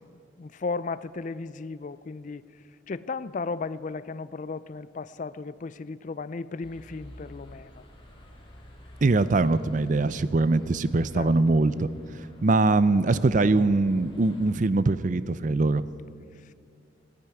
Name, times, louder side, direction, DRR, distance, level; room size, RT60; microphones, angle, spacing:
voice 1, 0.0-2.4 2.9-7.8 11.1-11.6 16.4-16.5, left 4 dB, 40° left, 16 dB, 0.4 m, -35 dB
sound 1, 6.6-14.5, equal, 25° left, 2.3 m, -49 dB
voice 2, 9.0-11.9 12.4-15.8, right 3 dB, 40° right, 16 dB, 0.5 m, -22 dB
14.0 x 10.5 x 9.9 m, 2.3 s
head